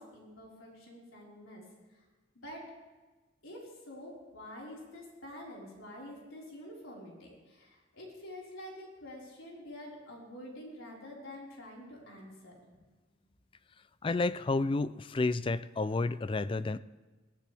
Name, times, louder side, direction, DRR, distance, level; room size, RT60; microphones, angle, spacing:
voice 1, 0.0-1.6 1.9-2.0 2.3-2.7 3.4-12.6, left 1 dB, 90° left, -3 dB, 4.7 m, -47 dB
voice 2, 14.0-16.8, left 3 dB, 25° left, 16 dB, 0.3 m, -30 dB
21.5 x 15.5 x 3.4 m, 1.2 s
head